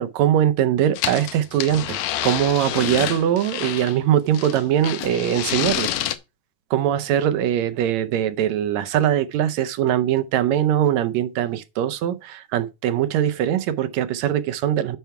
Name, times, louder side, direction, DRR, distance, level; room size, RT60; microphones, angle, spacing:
voice 1, 0.0-5.9 6.7-15.0, right 11 dB, 75° right, 1.8 m, -21 dB
sound 1, 1.0-4.0 4.3-6.2, left 12 dB, 80° left, 1.9 m, -28 dB
9.2 x 5.7 x 4.6 m
omnidirectional pair, 3.4 m